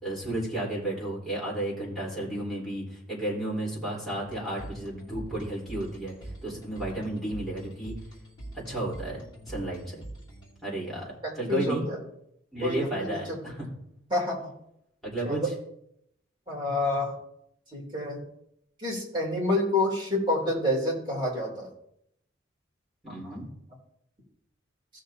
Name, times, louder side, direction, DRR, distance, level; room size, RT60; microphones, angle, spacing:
voice 1, 0.0-7.9 8.5-10.0 10.6-11.1 11.4-11.8 12.5-13.7 15.0-15.4 23.0-23.5, right 1 dB, ahead, -7 dB, 3.9 m, -33 dB
sound 1, 4.3-10.9, right 1 dB, 25° left, 2.7 m, -44 dB
voice 2, 11.2-12.0 12.6-13.4 14.1-14.5 15.2-15.5 16.5-17.1 17.7-18.2 18.8-21.7 23.1-23.4, left 1 dB, 25° right, -4 dB, 3.2 m, -28 dB
16.5 x 6.5 x 2.8 m, 0.74 s
head